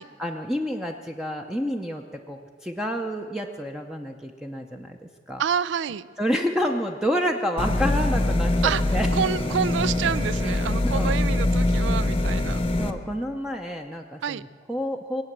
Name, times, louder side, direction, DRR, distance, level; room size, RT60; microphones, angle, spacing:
voice 1, 0.2-5.0 5.3-5.4 6.2-9.1 10.8-11.2 12.8-15.2, equal, 5° right, 2 dB, 0.6 m, -29 dB
voice 2, 5.4-6.1 8.6-8.8 9.1-12.6 14.2-14.4, right 7 dB, 75° right, 18 dB, 0.4 m, -27 dB
sound 1, 7.6-12.9, left 1 dB, 30° left, 0.8 m, -23 dB
22.0 x 8.8 x 7.4 m, 2.1 s
head